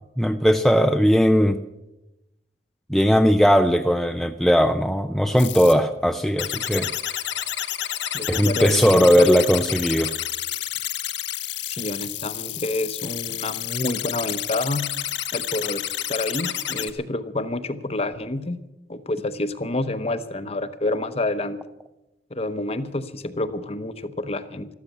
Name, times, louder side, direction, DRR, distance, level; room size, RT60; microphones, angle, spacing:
voice 1, 0.2-1.6 2.9-6.9 8.3-10.1, equal, ahead, 6 dB, 0.4 m, -18 dB
sound 1, 5.4-5.7 6.4-16.9, left 12 dB, 70° left, 0.9 m, -30 dB
voice 2, 8.1-9.4 11.6-14.9 15.3-18.6 18.9-21.6 22.3-24.7, left 2 dB, 35° left, 12 dB, 0.8 m, -28 dB
13.5 x 13.5 x 7.3 m, 0.95 s
head